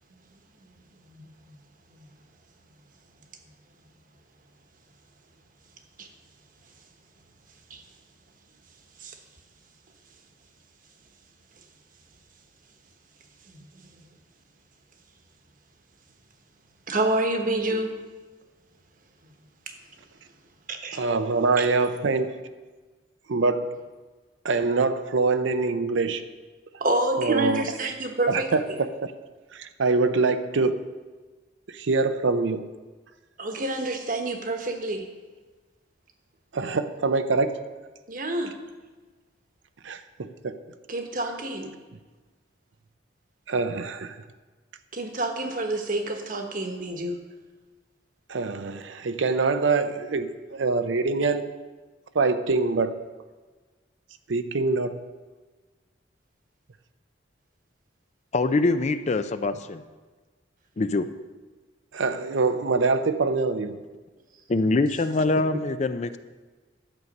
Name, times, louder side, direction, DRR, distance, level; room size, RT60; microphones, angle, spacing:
voice 1, 16.9-18.0 19.7-19.8 20.7-21.0 21.6-21.7 26.8-28.8 33.4-35.1 38.1-38.5 40.9-41.7 44.9-47.2, right 1 dB, 45° right, 5 dB, 1.2 m, -28 dB
voice 2, 20.9-22.4 23.3-23.8 24.4-26.2 27.2-27.6 28.3-29.1 29.5-30.8 31.7-32.7 36.5-37.6 39.8-40.6 43.5-44.2 48.3-51.5 52.1-53.0 54.3-55.0 61.9-63.8 65.5-65.6, right 3 dB, 85° right, 9 dB, 0.6 m, -24 dB
voice 3, 58.3-59.8 60.8-61.1 64.5-66.2, left 3 dB, 40° left, 11 dB, 0.4 m, -24 dB
11.5 x 8.0 x 5.3 m, 1.3 s
head